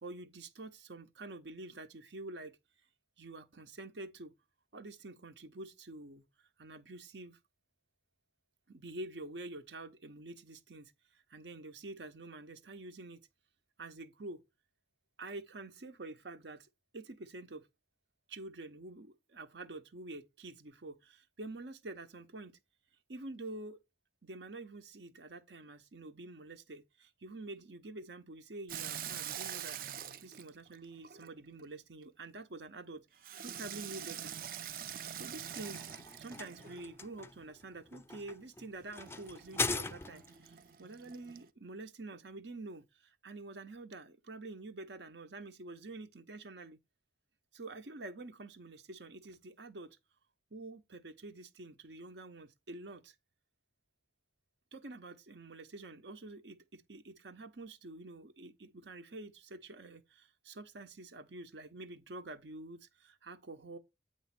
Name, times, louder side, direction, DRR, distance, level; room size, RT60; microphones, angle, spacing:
voice 1, 0.0-2.6 3.2-4.3 4.7-7.4 8.7-13.2 13.8-14.4 15.2-16.7 16.9-17.7 18.3-22.6 23.1-23.8 24.2-34.3 35.1-35.9 36.2-46.8 47.5-50.0 50.5-53.2 54.7-63.8, right 2 dB, 80° right, 0.9 m, -48 dB
Water tap faucet / Sink (filling or washing), 28.7-31.7 33.2-37.0 39.0-41.5, right 9 dB, 55° right, 0.5 m, -45 dB
sound 1, 35.3-40.4, left 3 dB, 15° left, 0.4 m, -40 dB
8.9 x 3.2 x 5.8 m
head